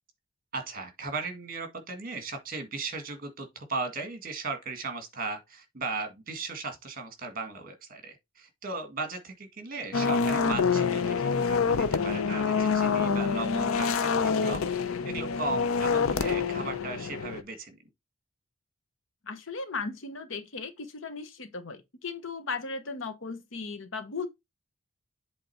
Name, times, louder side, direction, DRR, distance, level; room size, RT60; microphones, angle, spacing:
voice 1, 0.5-14.7 15.1-17.8, right 3 dB, 40° right, 1.7 m, -37 dB
sound 1, 9.9-17.4, left 5 dB, 75° left, 0.6 m, -26 dB
voice 2, 19.2-24.3, left 4 dB, 60° left, 1.0 m, -37 dB
7.9 x 3.5 x 4.4 m
head